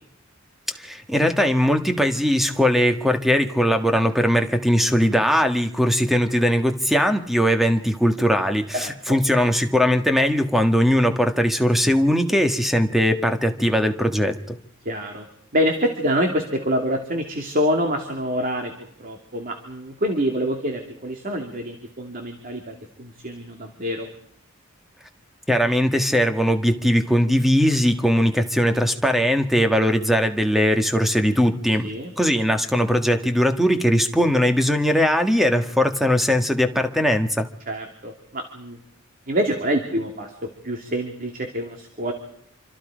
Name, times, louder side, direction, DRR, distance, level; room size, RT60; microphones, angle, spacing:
voice 1, 0.8-14.6 25.5-31.9 32.2-37.5, equal, ahead, 6 dB, 1.6 m, -20 dB
voice 2, 8.7-9.2 14.8-15.3 15.5-18.7 19.0-24.1 31.8-32.1 37.7-38.8 39.3-40.3 40.6-42.1, equal, 45° right, 3 dB, 2.8 m, -26 dB
27.0 x 25.5 x 5.1 m, 0.67 s
head